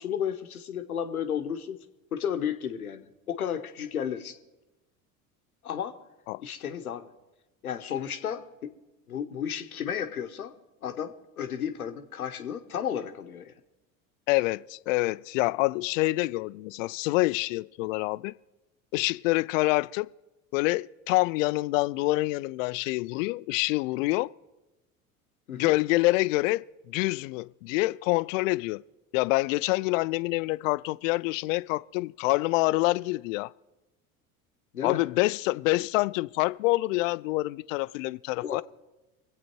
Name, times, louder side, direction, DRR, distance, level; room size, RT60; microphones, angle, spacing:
voice 1, 0.0-1.8 2.1-4.4 5.6-5.9 6.4-7.1 7.6-8.7 9.1-10.5 10.8-13.5 25.5-25.7 34.7-35.0 35.8-35.9 38.4-38.6, left 8 dB, 90° left, 1.1 m, -33 dB
voice 2, 14.3-18.3 18.9-20.1 20.5-24.3 25.5-28.8 29.1-33.5 34.8-38.6, left 21 dB, 65° left, 0.5 m, -26 dB
24.5 x 8.5 x 4.6 m
hypercardioid pair, 70°, 42 cm